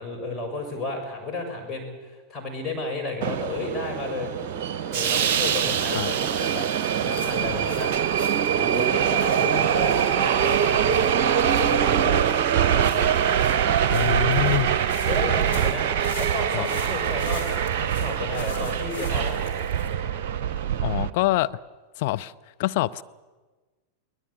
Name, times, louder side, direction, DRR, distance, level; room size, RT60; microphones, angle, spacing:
voice 1, 0.0-4.3 4.9-7.9 8.6-12.2 12.6-13.5 14.3-19.6, left 2 dB, 15° left, 1 dB, 6.8 m, -33 dB
Subway metro underground, 3.2-21.1, right 9 dB, 50° right, 0.9 m, -23 dB
sound 1, 6.2-21.3, left 5 dB, 65° left, 4.2 m, -45 dB
voice 2, 13.9-14.7 16.5-16.7 20.8-21.5 22.0-22.3 22.6-23.0, left 17 dB, 50° left, 11 dB, 0.6 m, -25 dB
22.5 x 19.0 x 8.6 m, 1.3 s
figure-of-eight pair, 90°, 0 cm